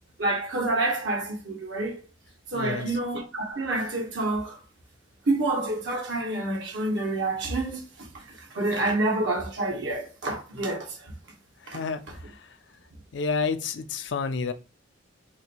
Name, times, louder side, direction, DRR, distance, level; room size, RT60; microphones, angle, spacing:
voice 1, 0.2-2.0 2.5-4.6 5.3-11.1 11.7-11.8, right 2 dB, 70° right, 1.1 m, -28 dB
voice 2, 2.5-3.0 11.6-12.5 13.1-14.5, left 5 dB, 65° left, 0.4 m, -30 dB
2.8 x 2.6 x 4.2 m
head